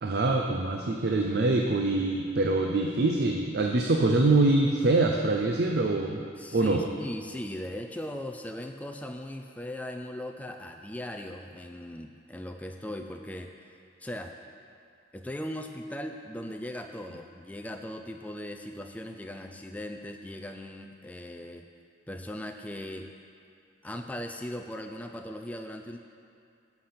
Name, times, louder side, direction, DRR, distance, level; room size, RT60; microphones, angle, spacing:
voice 1, 0.0-6.3 6.5-6.8, right 2 dB, 55° right, 2 dB, 0.6 m, -24 dB
voice 2, 6.4-13.5 14.0-14.4 15.1-21.6 22.1-23.1 23.8-26.0, left 1 dB, 10° left, 4 dB, 0.4 m, -38 dB
11.5 x 5.9 x 5.8 m, 2.4 s
head